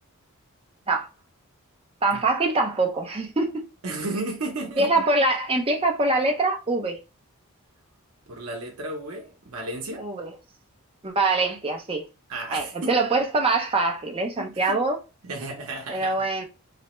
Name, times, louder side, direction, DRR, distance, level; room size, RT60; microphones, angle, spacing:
voice 1, 2.0-3.7 4.8-7.0 10.0-10.3 11.0-12.0 12.5-15.0 15.9-16.5, right 2 dB, 25° right, 0.5 m, -24 dB
voice 2, 3.8-5.0 8.3-10.0 12.3-13.0 14.4-14.8 15.2-16.1, right 2 dB, 75° right, 0.7 m, -33 dB
3.2 x 2.1 x 2.9 m
head